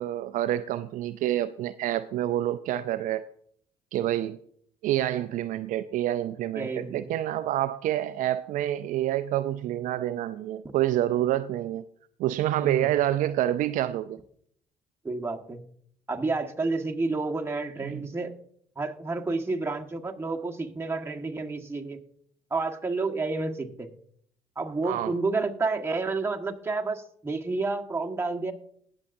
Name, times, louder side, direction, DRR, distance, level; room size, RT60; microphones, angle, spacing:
voice 1, 0.0-3.2 3.9-4.4 4.8-11.8 12.2-14.2 17.8-18.0 24.8-25.1, right 13 dB, 65° right, 12 dB, 0.4 m, -27 dB
voice 2, 6.5-7.1 12.6-12.9 15.0-15.6 16.1-18.3 18.8-22.0 22.5-23.9 24.5-28.5, right 3 dB, 15° right, 1 dB, 1.5 m, -30 dB
19.5 x 6.9 x 2.6 m, 0.64 s
supercardioid pair, 60°, 14 cm